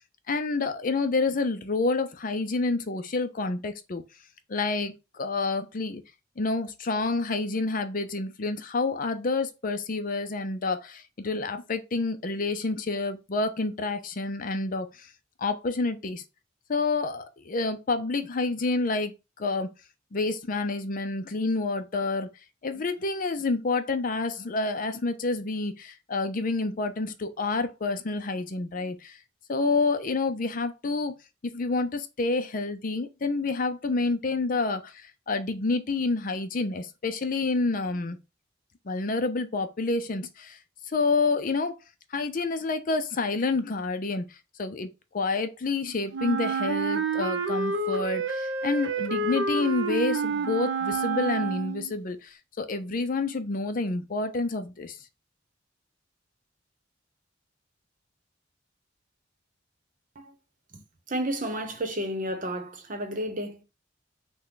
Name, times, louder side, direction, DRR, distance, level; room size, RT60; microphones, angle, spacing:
voice 1, 0.3-4.0 4.5-6.0 6.4-15.1 15.4-16.2 16.7-19.7 20.1-22.3 22.6-29.2 29.5-31.2 31.4-38.2 38.9-40.6 40.9-41.8 42.1-44.9 45.1-55.0, left 3 dB, 45° left, 0.5 m, -28 dB
Wind instrument woodwind instrument, 46.1-51.9, right 4 dB, 80° right, 0.6 m, -29 dB
voice 2, 61.1-63.6, right 1 dB, 45° right, 0.9 m, -31 dB
5.9 x 2.3 x 3.8 m
head